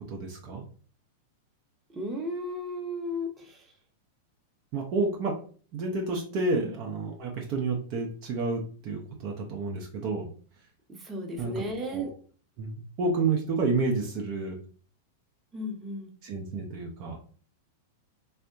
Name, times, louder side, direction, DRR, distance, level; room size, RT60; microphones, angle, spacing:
voice 1, 0.1-0.6 4.7-5.4 5.7-10.3 11.4-12.1 12.6-14.6 16.2-17.2, right 3 dB, 45° right, 1 dB, 0.5 m, -30 dB
voice 2, 1.9-3.6 6.6-6.7 11.0-12.1 15.5-16.1, equal, 15° right, -1 dB, 0.8 m, -34 dB
3.4 x 2.1 x 2.5 m, 0.42 s
figure-of-eight pair, 95°, 0 cm